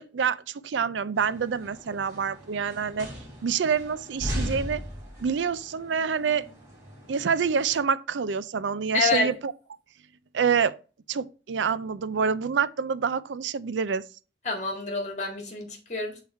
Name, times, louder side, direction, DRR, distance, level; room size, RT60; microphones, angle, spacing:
voice 1, 0.0-3.1 3.4-4.8 5.2-6.5 7.1-9.5 10.3-10.7 11.1-14.0, right 6 dB, 85° right, 0.4 m, -27 dB
sound 1, 1.2-7.8, equal, 15° right, 2.7 m, -38 dB
voice 2, 8.9-9.3 14.4-16.2, left 3 dB, 40° left, 2.0 m, -27 dB
7.0 x 4.0 x 4.5 m
head